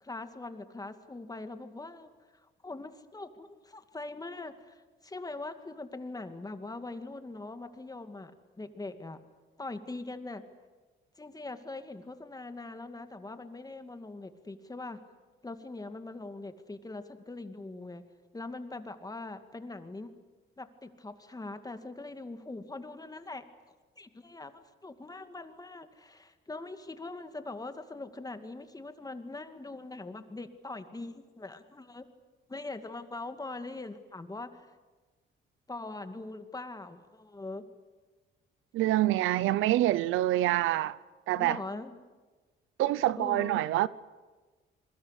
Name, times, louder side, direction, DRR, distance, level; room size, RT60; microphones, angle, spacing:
voice 1, 0.0-2.1 2.6-8.3 8.6-9.2 9.6-10.4 11.2-15.0 15.4-18.0 18.3-20.1 20.6-23.5 24.0-32.1 32.5-34.7 35.7-37.6 41.4-42.0 43.2-43.6, left 2 dB, 20° left, 2.3 m, -42 dB
voice 2, 38.7-41.0 41.3-41.6 42.8-43.9, right 15 dB, 90° right, 0.7 m, -26 dB
28.0 x 22.0 x 8.3 m
cardioid pair, 90°, 20 cm